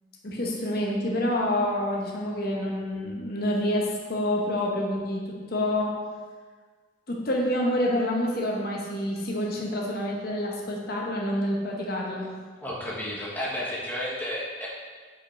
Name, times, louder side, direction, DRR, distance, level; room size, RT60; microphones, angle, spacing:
voice 1, 0.2-6.0 7.1-12.3, left 1 dB, 50° left, -1 dB, 0.9 m, -27 dB
voice 2, 12.6-14.7, left 1 dB, 10° left, -5 dB, 1.0 m, -32 dB
5.2 x 5.0 x 4.2 m, 1.5 s
head